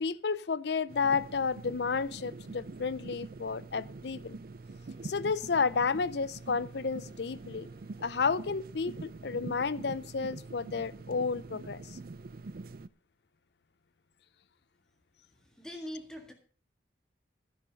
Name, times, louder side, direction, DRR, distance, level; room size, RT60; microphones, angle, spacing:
voice 1, 0.0-4.4 5.0-7.7 8.0-12.0, left 5 dB, 60° left, 0.5 m, -31 dB
sound 1, 0.9-12.9, right 3 dB, 50° right, 0.5 m, -45 dB
Wind instrument woodwind instrument, 4.6-9.0, right 1 dB, 20° right, 2.9 m, -62 dB
voice 2, 15.6-16.3, equal, 5° left, 1.8 m, -42 dB
11.5 x 10.0 x 5.3 m
head